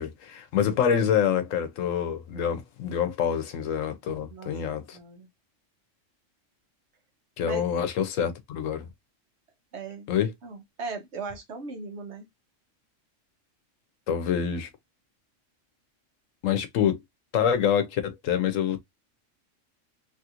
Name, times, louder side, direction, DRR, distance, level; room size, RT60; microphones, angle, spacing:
voice 1, 0.0-5.0 7.4-8.9 10.1-10.3 14.1-14.7 16.4-17.0 17.3-18.8, left 8 dB, 85° left, 1.1 m, -26 dB
voice 2, 4.9-5.3 7.4-7.8 9.7-10.1 10.4-12.3, right 4 dB, 65° right, 1.2 m, -38 dB
3.1 x 2.4 x 2.8 m
omnidirectional pair, 1.3 m